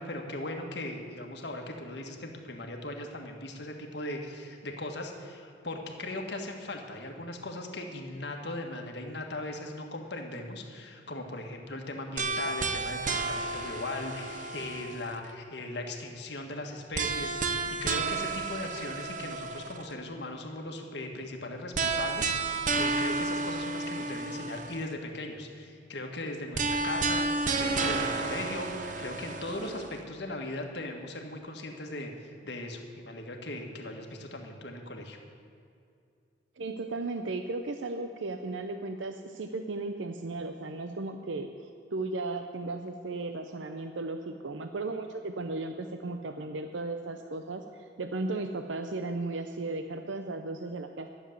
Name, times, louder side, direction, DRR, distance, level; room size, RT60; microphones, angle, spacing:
voice 1, 0.0-35.2, left 1 dB, 65° left, 3 dB, 1.6 m, -39 dB
sound 1, 12.2-15.3 16.9-19.9 21.7-24.9 26.5-30.0, right 3 dB, 40° right, 0.8 m, -31 dB
voice 2, 36.6-51.1, right 2 dB, 80° right, 6 dB, 0.6 m, -35 dB
12.0 x 7.2 x 9.2 m, 2.5 s
head